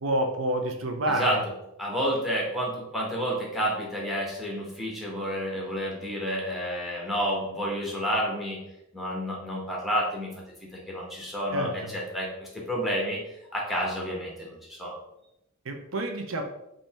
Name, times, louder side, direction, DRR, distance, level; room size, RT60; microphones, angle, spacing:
voice 1, 0.0-1.4 11.5-11.7 15.7-16.4, right 1 dB, 80° right, 4 dB, 0.7 m, -28 dB
voice 2, 1.1-1.4 1.8-8.6 8.9-10.3 10.7-13.2 13.5-14.9, equal, ahead, -3 dB, 1.2 m, -30 dB
5.3 x 2.8 x 3.5 m, 0.85 s
head